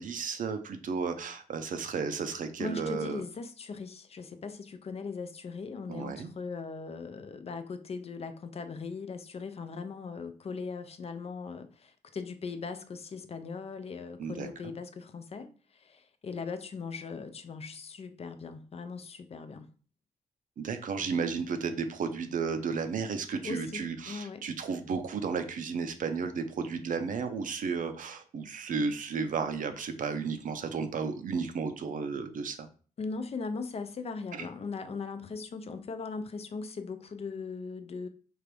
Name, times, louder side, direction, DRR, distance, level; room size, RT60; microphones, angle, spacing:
voice 1, 0.0-3.2 5.9-6.3 14.2-14.7 20.6-32.7 34.3-34.5, right 5 dB, 65° right, 0.6 m, -33 dB
voice 2, 2.6-19.7 23.4-24.5 33.0-38.1, left 4 dB, 45° left, 0.4 m, -39 dB
4.6 x 2.5 x 3.3 m
cardioid pair, 100°, 15 cm